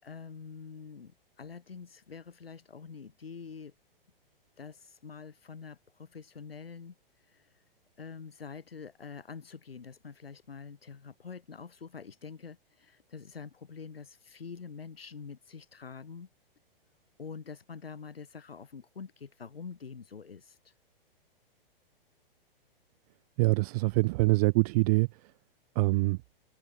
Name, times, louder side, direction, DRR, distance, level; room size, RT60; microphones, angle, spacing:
voice 1, 0.0-3.7 4.6-7.6 8.0-16.3 17.2-20.7, left 5 dB, 80° left, 6.9 m, -46 dB
voice 2, 23.4-25.1 25.7-26.2, right 24 dB, 40° right, 1.2 m, -24 dB
figure-of-eight pair, 115°, 29 cm